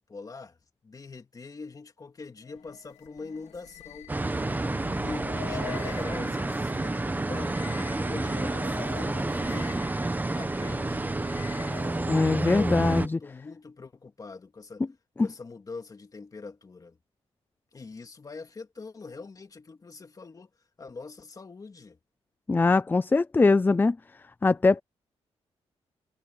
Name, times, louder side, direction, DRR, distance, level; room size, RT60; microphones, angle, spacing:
voice 1, 0.1-0.6 0.8-4.1 4.8-7.6 8.0-9.8 10.3-11.0 11.9-14.8 15.2-17.0 17.7-20.5 20.8-22.0, left 4 dB, 35° left, 2.6 m, -43 dB
sound 1, 2.4-12.2, left 11 dB, 75° left, 2.9 m, -45 dB
sound 2, 4.1-13.1, right 2 dB, 15° right, 1.3 m, -29 dB
voice 2, 12.1-13.2 22.5-24.0 24.4-24.8, left 3 dB, 15° left, 0.4 m, -22 dB
cardioid pair, 95°, 11 cm